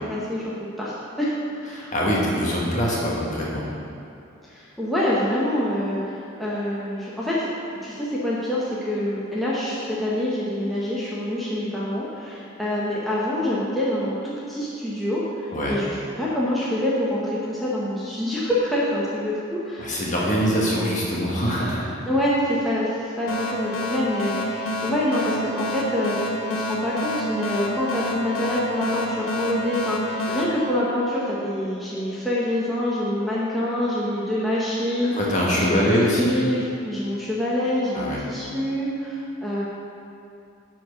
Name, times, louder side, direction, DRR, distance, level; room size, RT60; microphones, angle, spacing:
voice 1, 0.1-1.9 4.5-7.5 7.8-20.0 22.0-35.1 35.6-39.7, left 1 dB, ahead, -8 dB, 1.0 m, -26 dB
voice 2, 1.7-3.7 15.5-15.7 19.8-21.9 35.1-36.4 37.9-38.2, equal, 35° left, -5 dB, 1.5 m, -23 dB
sound 1, 23.3-31.6, left 1 dB, 85° left, 1.0 m, -29 dB
10.5 x 4.5 x 5.8 m, 2.5 s
head